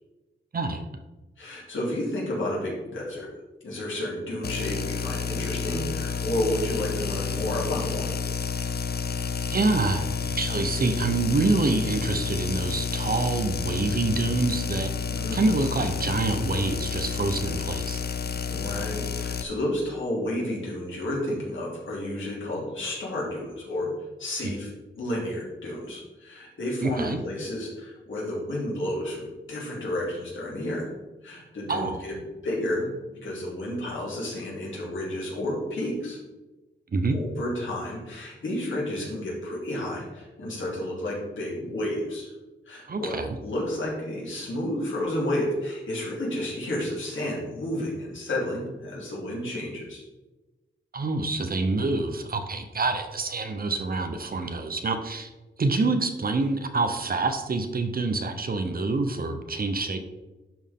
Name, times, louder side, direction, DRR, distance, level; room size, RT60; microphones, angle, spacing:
voice 1, 0.5-0.9 9.5-10.1 10.4-14.9 15.3-18.0 26.8-27.2 31.7-32.0 36.9-37.2 42.9-43.4 50.9-55.3 55.6-60.0, right 3 dB, 45° right, 7 dB, 0.8 m, -26 dB
voice 2, 1.4-3.3 3.6-8.1 15.1-15.4 18.5-23.9 24.2-24.7 25.0-30.9 31.2-32.2 32.4-32.9 33.2-36.2 37.1-42.3 42.7-43.2 43.4-50.0, left 1 dB, 80° left, -4 dB, 2.9 m, -31 dB
sound 1, 4.4-19.4, left 6 dB, 55° left, 0.5 m, -30 dB
11.5 x 4.5 x 3.6 m, 1.1 s
wide cardioid pair, 85°, 20 cm